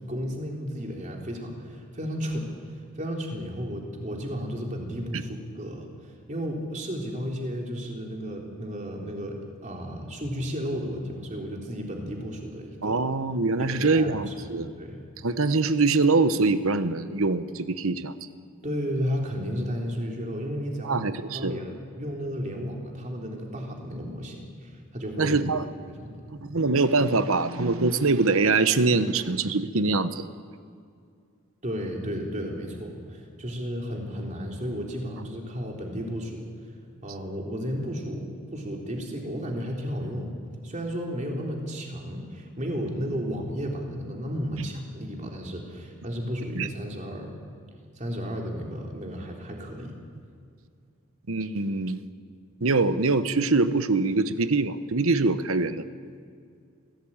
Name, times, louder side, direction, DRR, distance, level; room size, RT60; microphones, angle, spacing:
voice 1, 0.1-2.5 2.8-13.0 13.6-15.0 18.6-21.0 21.3-21.7 22.0-25.4 25.9-26.2 31.6-36.4 37.0-40.4 40.6-47.3 48.0-50.0, equal, 35° right, 0 dB, 3.6 m, -33 dB
voice 2, 12.8-14.7 15.2-18.1 20.8-21.5 25.2-25.7 26.4-30.2 46.5-46.7 51.3-52.0 52.6-55.8, right 3 dB, 70° right, 12 dB, 1.0 m, -23 dB
25.0 x 16.5 x 8.9 m, 2.3 s
head